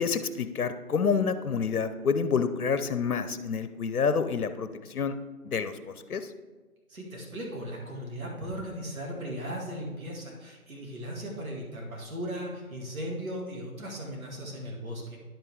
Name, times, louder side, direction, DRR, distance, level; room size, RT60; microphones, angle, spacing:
voice 1, 0.0-5.1 5.4-6.3, left 6 dB, 70° left, 11 dB, 0.7 m, -28 dB
voice 2, 6.9-15.2, equal, 65° right, -2 dB, 2.3 m, -37 dB
10.5 x 5.3 x 3.6 m, 1.3 s
figure-of-eight pair, 155°, 45 cm